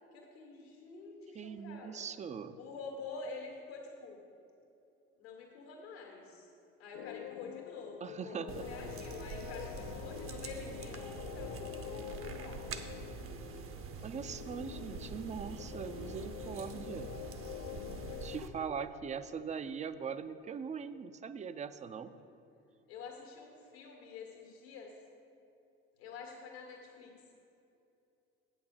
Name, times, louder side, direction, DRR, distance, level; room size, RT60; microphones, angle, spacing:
voice 1, 0.1-2.1 2.6-4.2 5.2-6.5 6.8-12.6 13.2-14.1 18.1-18.5 22.0-22.3 22.9-24.9 26.0-27.1, left 4 dB, 85° left, 0 dB, 1.8 m, -48 dB
voice 2, 1.3-2.6 8.0-8.7 14.0-17.2 18.2-22.1, right 6 dB, 25° right, 12 dB, 0.4 m, -41 dB
sound 1, 6.9-18.4, left 12 dB, 60° left, 0.4 m, -46 dB
sound 2, 8.5-18.5, right 5 dB, 45° right, 0.8 m, -45 dB
8.4 x 6.4 x 6.0 m, 2.7 s
hypercardioid pair, 70°, 30 cm